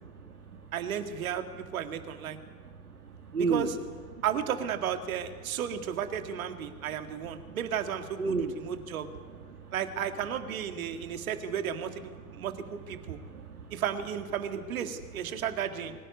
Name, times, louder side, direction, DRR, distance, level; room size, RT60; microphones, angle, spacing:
voice 1, 0.0-0.7 2.5-3.7 4.2-4.3 7.5-7.6 8.2-8.7 9.5-9.7 11.1-11.2 12.2-12.5 13.1-13.8, right 4 dB, 85° right, 3 dB, 1.9 m, -34 dB
voice 2, 0.7-2.4 3.4-3.7 4.2-9.1 9.7-13.2 13.7-15.9, right 8 dB, 70° right, 7 dB, 2.1 m, -34 dB
24.5 x 16.0 x 9.6 m, 1.6 s
figure-of-eight pair, 80°, 43 cm